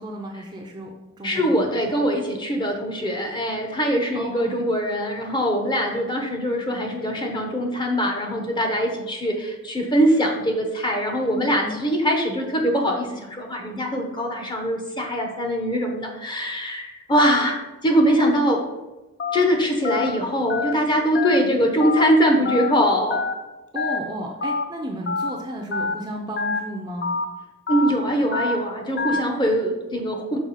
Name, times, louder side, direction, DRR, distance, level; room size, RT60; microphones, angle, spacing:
voice 1, 0.0-2.1 4.1-4.6 11.2-11.8 23.7-27.2, right 1 dB, 20° right, 1 dB, 0.5 m, -33 dB
voice 2, 1.2-17.6 17.8-18.6 19.3-23.2 27.7-30.4, equal, 20° left, 2 dB, 0.8 m, -22 dB
Telephone, 19.2-19.4 19.8-20.1 20.5-20.7 21.1-21.4 21.8-22.0 22.4-22.7 23.1-23.3 23.8-24.0 24.4-24.6 25.1-25.3 25.7-25.9 26.4-26.6 27.0-27.2 27.7-27.9 28.3-28.5 29.0-29.2, left 4 dB, 45° left, 0.5 m, -25 dB
6.0 x 4.6 x 4.1 m, 1.1 s
head